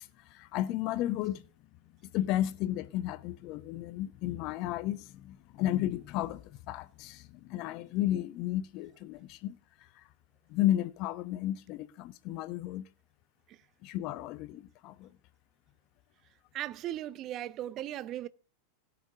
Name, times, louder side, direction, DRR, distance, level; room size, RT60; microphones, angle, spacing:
voice 1, 0.0-1.5 2.0-9.6 10.0-10.1 10.5-12.9 13.8-15.1, left 13 dB, 40° left, 0.6 m, -33 dB
voice 2, 16.5-18.3, right 13 dB, 35° right, 0.4 m, -37 dB
17.0 x 5.9 x 3.7 m
figure-of-eight pair, 90°, 0 cm